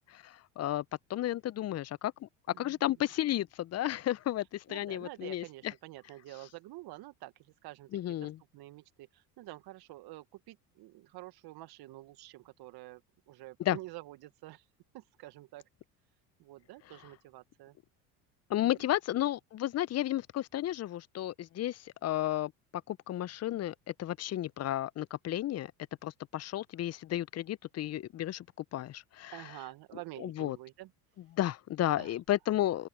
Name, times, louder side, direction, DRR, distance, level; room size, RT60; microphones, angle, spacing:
voice 1, 0.1-0.8 1.1-2.3 2.6-5.4 7.9-8.4 13.6-13.8 18.5-22.5 22.9-25.7 26.0-28.4 28.7-29.4 30.2-30.6 31.3-32.9, left 13 dB, 35° left, 0.7 m, -33 dB
voice 2, 4.7-13.0 13.3-14.7 14.9-15.6 16.4-17.8 18.6-18.9 29.3-30.9 32.0-32.1, right 17 dB, 55° right, 1.5 m, -48 dB
open air
hypercardioid pair, 75°, 46 cm